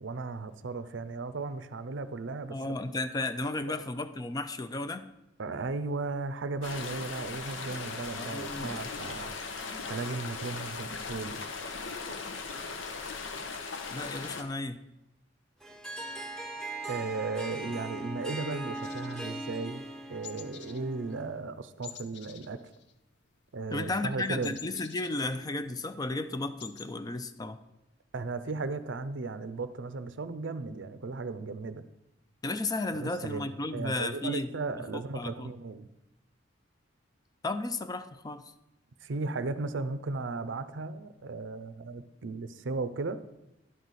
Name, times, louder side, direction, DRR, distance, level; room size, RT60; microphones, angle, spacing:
voice 1, 0.0-2.6 3.7-3.8 5.4-9.3 9.9-11.4 16.9-19.8 20.1-22.7 23.5-24.6 28.1-31.8 32.9-35.9 39.0-43.2, right 3 dB, 75° right, 12 dB, 0.6 m, -36 dB
voice 2, 2.5-5.1 8.1-9.0 13.9-14.8 23.7-27.6 32.4-34.5 34.9-35.5 37.4-38.4, left 2 dB, 20° left, 10 dB, 0.4 m, -34 dB
sound 1, 6.6-14.4, left 4 dB, 90° left, 0.9 m, -38 dB
Harp, 15.6-21.4, right 2 dB, 5° left, 0.8 m, -40 dB
sound 2, 18.8-19.9 20.2-20.8 21.1-21.3 21.8-23.4 23.6-25.7 26.1-26.2 26.4-26.9, left 9 dB, 65° left, 0.6 m, -48 dB
11.0 x 6.3 x 4.1 m, 0.93 s
head